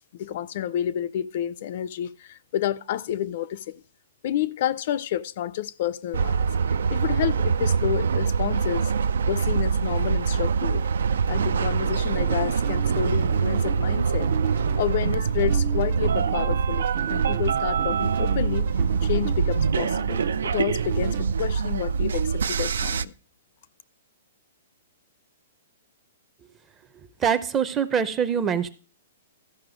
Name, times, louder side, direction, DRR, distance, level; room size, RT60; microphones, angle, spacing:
voice 1, 0.1-3.8 4.2-8.9 9.3-10.9 11.3-14.3 14.8-18.7 19.0-23.1, left 11 dB, 50° left, 0.4 m, -30 dB
sound 1, 6.1-23.0, right 6 dB, 85° right, 0.4 m, -24 dB
sound 2, 11.4-21.3, right 8 dB, 55° right, 0.7 m, -33 dB
voice 2, 27.2-28.7, right 7 dB, 15° right, 0.6 m, -24 dB
13.5 x 5.4 x 5.0 m
hypercardioid pair, 160°, 0 cm